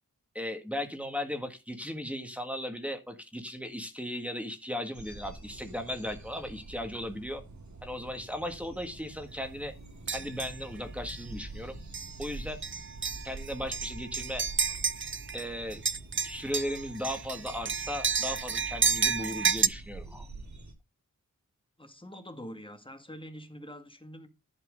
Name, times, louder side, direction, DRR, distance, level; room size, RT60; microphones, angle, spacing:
voice 1, 0.3-7.4 7.8-9.7 10.1-11.7 12.2-12.6 13.2-14.4 15.3-15.8 16.2-20.3, left 1 dB, 5° right, 1.8 m, -36 dB
sound 1, 4.9-20.7, right 2 dB, 55° right, 2.0 m, -46 dB
sound 2, 10.1-10.6 11.1-11.2 11.9-12.3 12.6-15.4 15.7-19.7, right 5 dB, 35° right, 0.5 m, -31 dB
voice 2, 21.8-24.3, equal, 15° left, 1.8 m, -45 dB
11.5 x 4.5 x 5.2 m
wide cardioid pair, 65°, 34 cm